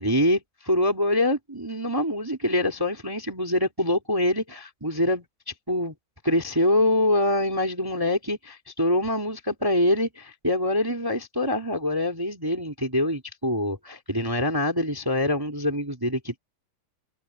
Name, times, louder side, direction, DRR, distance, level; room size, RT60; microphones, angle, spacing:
voice 1, 0.0-5.2 5.7-5.9 6.2-16.4, left 1 dB, 10° right, 0.9 m, -25 dB
omnidirectional pair, 5.1 m